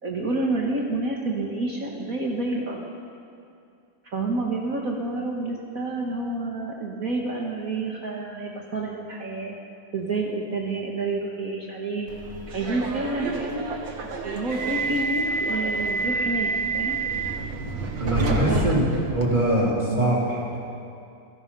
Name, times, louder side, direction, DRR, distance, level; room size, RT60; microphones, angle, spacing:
voice 1, 0.0-2.8 4.0-9.6 9.9-12.1 12.5-13.7 14.2-17.0 18.5-18.7 19.9-20.1, right 2 dB, 50° right, -1 dB, 2.1 m, -29 dB
Subway metro underground, 12.1-19.7, right 3 dB, 90° right, 2.5 m, -28 dB
voice 2, 18.0-18.8 19.1-20.6, right 1 dB, 25° right, -6 dB, 3.6 m, -23 dB
28.0 x 17.0 x 5.5 m, 2.5 s
omnidirectional pair, 2.0 m